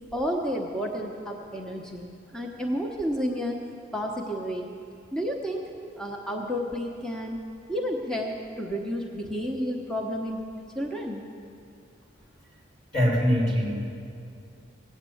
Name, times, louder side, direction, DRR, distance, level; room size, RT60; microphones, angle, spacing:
voice 1, 0.1-3.6 3.9-4.7 5.1-5.7 6.0-7.4 7.7-10.4 10.7-11.3, equal, 5° left, -1 dB, 0.9 m, -31 dB
voice 2, 12.9-13.9, equal, 65° left, -6 dB, 4.5 m, -23 dB
17.0 x 8.0 x 8.5 m, 2.5 s
head